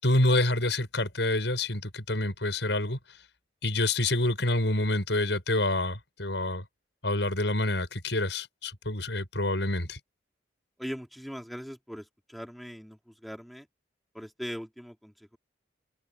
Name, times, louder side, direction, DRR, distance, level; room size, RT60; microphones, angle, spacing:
voice 1, 0.0-3.0 3.6-6.6 7.0-10.0, left 1 dB, 75° left, 6.8 m, -27 dB
voice 2, 10.8-13.7 14.1-15.4, equal, ahead, 4.4 m, -40 dB
head